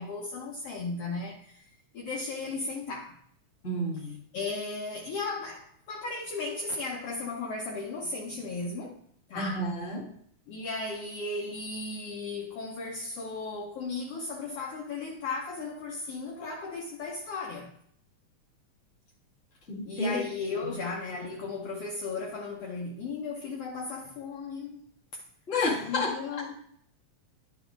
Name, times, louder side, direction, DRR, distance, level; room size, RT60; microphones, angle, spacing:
voice 1, 0.0-1.7 1.9-3.2 4.0-9.0 9.3-9.7 10.5-17.7 19.9-24.8 25.9-26.5, left 3 dB, 65° left, 1.7 m, -36 dB
voice 2, 3.6-4.2 9.3-10.1 19.7-20.2 25.5-26.4, left 1 dB, 25° left, 1.6 m, -30 dB
10.5 x 4.8 x 3.8 m
omnidirectional pair, 3.4 m